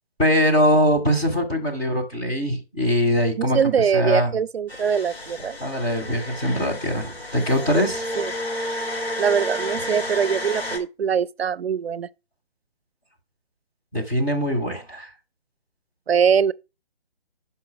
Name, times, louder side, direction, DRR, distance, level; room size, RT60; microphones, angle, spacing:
voice 1, 0.2-4.3 5.6-8.0 13.9-15.1, equal, 5° left, 0.5 m, -22 dB
voice 2, 3.5-5.6 8.2-8.3 9.2-12.1 16.1-16.5, right 7 dB, 85° right, 0.5 m, -22 dB
sound 1, 4.7-10.8, left 1 dB, 85° left, 3.2 m, -31 dB
5.9 x 5.5 x 5.9 m
figure-of-eight pair, 150°, 30 cm